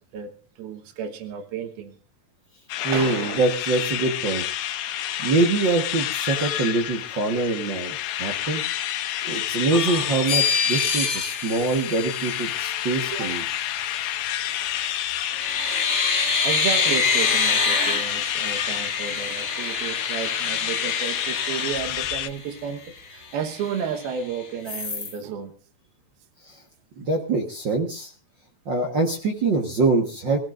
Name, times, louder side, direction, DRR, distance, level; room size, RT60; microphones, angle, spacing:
voice 1, 0.1-2.0 2.9-3.4 5.1-5.2 13.1-13.4 16.4-25.5, right 7 dB, 85° right, 7 dB, 3.2 m, -32 dB
sound 1, 2.7-22.3, left 12 dB, 85° left, 2.8 m, -29 dB
voice 2, 2.8-4.4 5.2-8.6 9.2-13.4 26.4-26.6 27.0-28.1 28.6-30.4, right 3 dB, 55° right, 2 dB, 1.2 m, -24 dB
sound 2, 9.7-12.7 14.5-14.9 15.3-22.5 23.0-23.1 23.3-24.2 24.7-25.1, left 5 dB, 35° left, 1.2 m, -26 dB
27.5 x 16.0 x 2.6 m, 0.36 s
omnidirectional pair, 4.3 m